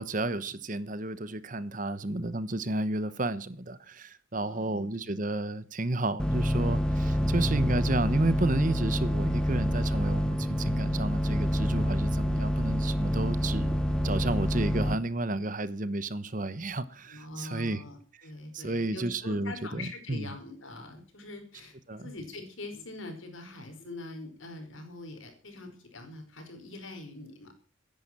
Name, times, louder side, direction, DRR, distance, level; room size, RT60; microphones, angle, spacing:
voice 1, 0.0-13.8 14.0-17.8 18.5-20.3 21.9-22.1, right 2 dB, 40° right, 1.1 m, -32 dB
voice 2, 4.3-4.9 7.1-7.4 17.1-27.5, left 2 dB, 75° left, 5.1 m, -43 dB
sound 1, 6.2-15.0, equal, 5° left, 1.1 m, -27 dB
14.5 x 10.5 x 7.6 m
head